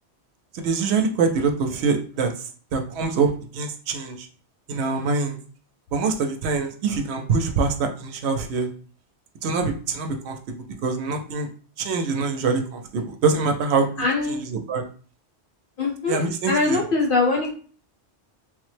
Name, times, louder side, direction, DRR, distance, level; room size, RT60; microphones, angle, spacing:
voice 1, 0.5-4.3 4.7-5.4 5.9-8.7 9.4-10.4 10.8-11.5 11.8-13.9 14.3-14.8 16.1-16.8, right 4 dB, 75° right, 6 dB, 0.8 m, -24 dB
voice 2, 14.0-14.4 15.8-16.2 16.5-17.6, left 3 dB, 55° left, -1 dB, 0.9 m, -22 dB
3.3 x 2.0 x 3.2 m, 0.41 s
omnidirectional pair, 1.2 m